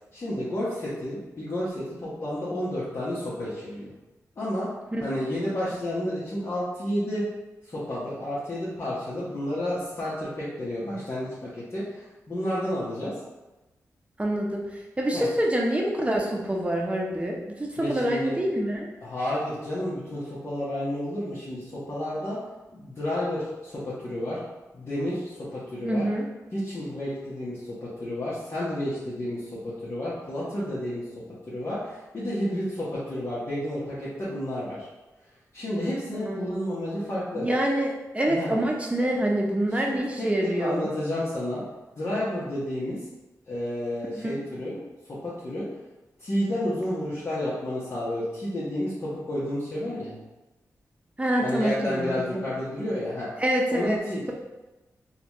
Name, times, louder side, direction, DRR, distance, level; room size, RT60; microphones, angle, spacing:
voice 1, 0.1-3.9 4.4-4.7 5.0-7.2 7.6-13.1 15.1-15.3 17.8-18.4 19.0-22.4 22.7-24.4 24.7-26.1 26.5-31.0 31.5-34.9 35.5-37.5 38.3-38.5 39.8-41.6 42.0-43.0 43.5-44.8 45.1-45.7 46.2-50.2 51.4-53.3 53.7-54.3, left 1 dB, 45° left, -10 dB, 1.1 m, -31 dB
voice 2, 14.2-14.6 15.0-18.9 25.8-26.3 36.2-36.6 37.3-40.9 44.1-44.3 51.2-52.4 53.4-54.0, right 1 dB, 20° right, -1 dB, 0.8 m, -26 dB
3.9 x 2.4 x 3.0 m, 1.1 s
cardioid pair, 65°, 6 cm